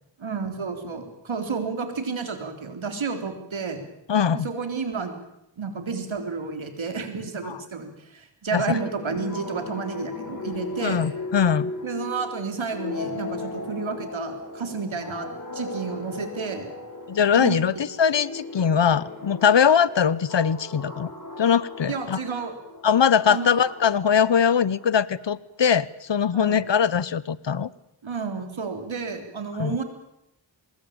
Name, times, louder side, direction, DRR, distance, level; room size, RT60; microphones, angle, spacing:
voice 1, 0.2-3.8 4.3-5.2 5.6-11.0 11.8-15.3 15.5-16.7 17.4-17.6 21.9-22.5 23.3-23.6 26.3-26.6 28.0-29.8, right 5 dB, 85° right, 6 dB, 3.9 m, -31 dB
voice 2, 4.1-4.5 7.4-7.6 8.5-8.8 10.8-11.7 17.1-21.1 21.4-22.2 22.8-27.7 29.6-29.8, left 7 dB, 65° left, 20 dB, 1.0 m, -21 dB
sound 1, 8.8-25.1, left 2 dB, 40° left, 5.0 m, -37 dB
23.5 x 20.5 x 8.9 m, 0.82 s
wide cardioid pair, 60°, 46 cm